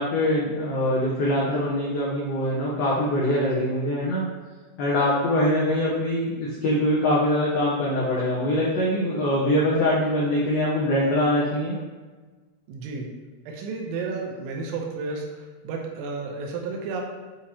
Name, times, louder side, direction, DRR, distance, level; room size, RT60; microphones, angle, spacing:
voice 1, 0.0-4.2 4.8-11.8, left 1 dB, 85° left, -8 dB, 2.1 m, -23 dB
voice 2, 12.7-13.1 13.5-17.0, right 4 dB, 80° right, 1 dB, 3.0 m, -32 dB
8.6 x 2.9 x 4.3 m, 1.3 s
omnidirectional pair, 5.9 m